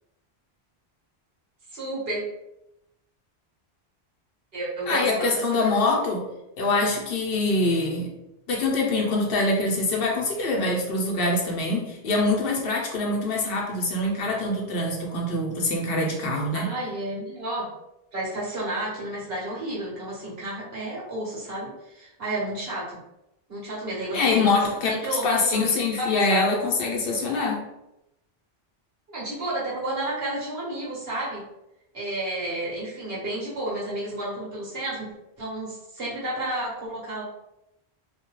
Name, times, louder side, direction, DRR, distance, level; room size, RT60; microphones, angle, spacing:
voice 1, 1.7-2.2 4.5-5.8 16.5-17.7 18.1-23.0 23.5-26.5 29.1-31.4 31.9-37.2, right 1 dB, 65° right, -7 dB, 1.3 m, -31 dB
voice 2, 4.9-6.2 6.6-8.1 8.5-16.7 24.1-24.9 25.2-27.6, left 2 dB, 65° left, -1 dB, 0.8 m, -24 dB
2.7 x 2.2 x 2.9 m, 0.88 s
omnidirectional pair, 1.1 m